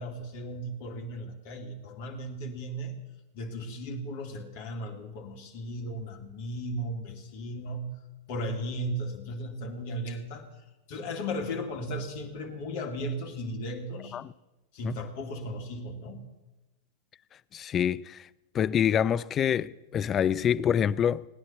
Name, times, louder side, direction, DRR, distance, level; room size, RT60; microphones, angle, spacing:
voice 1, 0.0-2.9 3.3-7.9 8.3-10.5 10.9-14.2 14.7-16.3, equal, 50° left, 2.6 m, -36 dB
voice 2, 17.5-18.3 18.5-21.2, left 9 dB, 25° left, 0.4 m, -26 dB
18.5 x 9.6 x 8.1 m
figure-of-eight pair, 90°, 0 cm